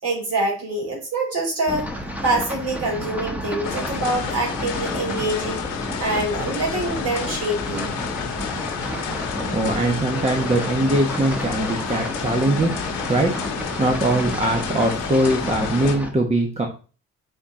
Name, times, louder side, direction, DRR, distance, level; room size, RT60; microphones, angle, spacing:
voice 1, 0.0-2.0 2.2-7.9, right 2 dB, 55° right, -1 dB, 4.1 m, -25 dB
sound 1, 1.7-16.1, equal, 5° right, 1.4 m, -31 dB
sound 2, 3.6-16.0, left 8 dB, 85° left, 1.3 m, -31 dB
voice 2, 9.5-12.7 13.1-13.3 13.8-16.7, right 1 dB, 20° right, 2 dB, 1.3 m, -21 dB
6.9 x 4.4 x 3.9 m, 0.36 s
cardioid pair, 90°, 30 cm